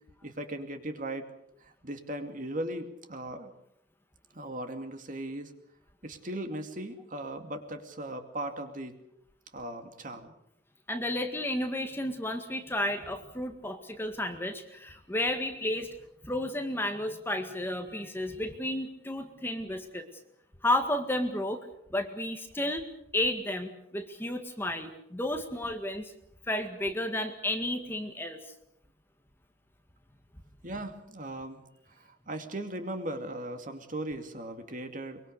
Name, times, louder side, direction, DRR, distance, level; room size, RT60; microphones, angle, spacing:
voice 1, 0.2-1.3 1.6-3.5 4.3-5.5 6.0-8.9 9.5-10.3 30.6-35.2, right 1 dB, 45° right, 6 dB, 2.5 m, -38 dB
voice 2, 10.9-16.0 16.2-20.1 20.6-21.6 21.9-22.9 23.1-26.1 26.5-28.4, left 1 dB, 10° left, 6 dB, 1.9 m, -32 dB
23.5 x 23.0 x 6.7 m, 0.76 s
head